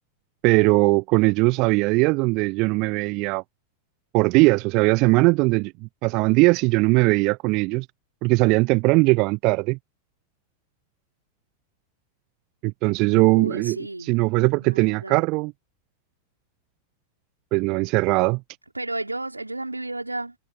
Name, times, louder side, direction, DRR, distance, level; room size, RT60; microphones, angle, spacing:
voice 1, 0.4-3.4 4.1-5.7 6.0-7.9 8.2-9.8 12.6-15.5 17.5-18.4, right 26 dB, 40° right, 0.4 m, -20 dB
voice 2, 13.3-14.2 14.5-15.2 18.7-20.4, right 2 dB, 85° right, 5.2 m, -32 dB
figure-of-eight pair, 90°, 0 cm